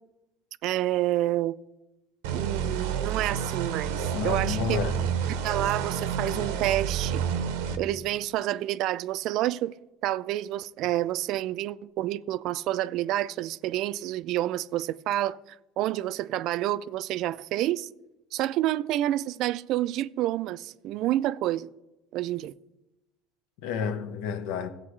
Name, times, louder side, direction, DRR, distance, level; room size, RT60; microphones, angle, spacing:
voice 1, 0.6-1.6 2.3-4.9 5.4-7.2 7.8-9.8 10.0-17.9 18.3-21.7 22.1-22.5, right 14 dB, 60° right, 0.3 m, -29 dB
sound 1, 2.2-7.8, right 7 dB, 90° right, 0.7 m, -29 dB
voice 2, 4.1-5.1 23.6-24.7, left 6 dB, 80° left, 0.8 m, -30 dB
15.0 x 8.1 x 3.2 m
supercardioid pair, 105°, 0 cm